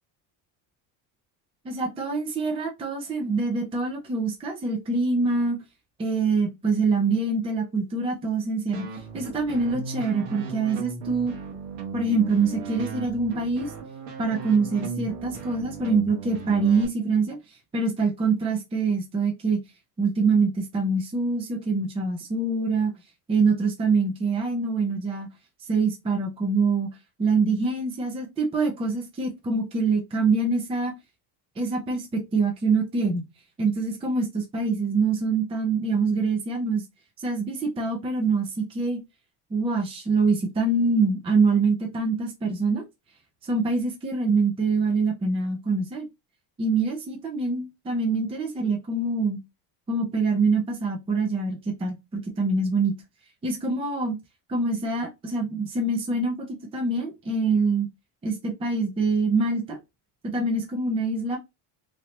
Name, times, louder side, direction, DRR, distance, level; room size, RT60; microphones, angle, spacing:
voice 1, 1.6-5.6 6.0-11.3 11.9-13.7 14.2-19.6 20.0-22.9 23.3-25.3 25.7-26.9 27.2-30.9 31.6-33.3 33.6-36.8 37.2-39.0 39.5-42.8 43.4-46.1 46.6-49.4 49.9-52.9 53.4-54.2 54.5-57.9 58.2-59.8 60.2-61.4, right 3 dB, 10° right, 0.5 m, -25 dB
sound 1, 8.7-16.9, right 5 dB, 80° right, 1.4 m, -36 dB
3.2 x 2.5 x 2.8 m
cardioid pair, 135°, 48 cm